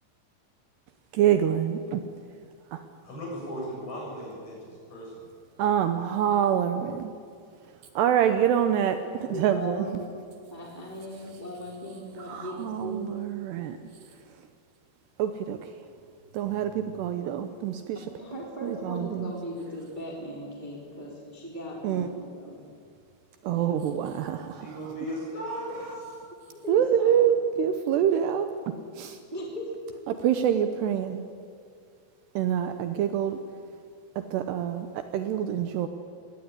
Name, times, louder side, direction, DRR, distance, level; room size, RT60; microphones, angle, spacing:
voice 1, 1.1-2.0 2.7-2.8 5.6-7.1 8.0-9.9 12.3-13.8 15.2-15.6 16.3-18.0 18.6-19.3 21.8-22.1 23.4-24.8 26.7-28.5 29.0-29.2 30.2-31.2 32.4-33.4 34.2-35.9, right 9 dB, 75° right, 9 dB, 2.8 m, -26 dB
voice 2, 3.0-5.3 24.5-26.2, equal, 45° left, -3 dB, 8.7 m, -37 dB
voice 3, 9.2-10.1 10.5-13.0 16.5-17.1 17.9-22.6 23.5-23.8 26.5-27.2 29.3-30.2, equal, 10° right, -2 dB, 3.3 m, -38 dB
20.5 x 18.0 x 9.7 m, 2.2 s
omnidirectional pair, 5.3 m